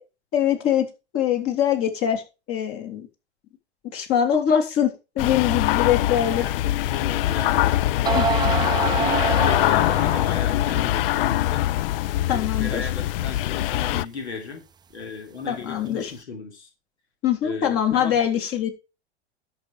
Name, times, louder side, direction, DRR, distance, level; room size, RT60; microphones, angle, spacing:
voice 1, 0.3-2.2 2.5-3.1 3.9-6.5 8.1-8.3 12.3-12.9 15.5-16.1 17.2-18.7, left 9 dB, 40° left, 5 dB, 3.4 m, -23 dB
sound 1, 5.2-14.0, left 15 dB, 60° left, 0.5 m, -23 dB
voice 2, 5.3-11.6 12.3-14.6 14.9-16.7 17.4-18.2, left 4 dB, 80° left, 4 dB, 3.2 m, -36 dB
sound 2, 6.9-7.0 7.7-7.8 8.1-10.5, right 8 dB, 15° right, 0.4 m, -26 dB
11.0 x 7.1 x 4.8 m, 0.28 s
figure-of-eight pair, 90°, 33 cm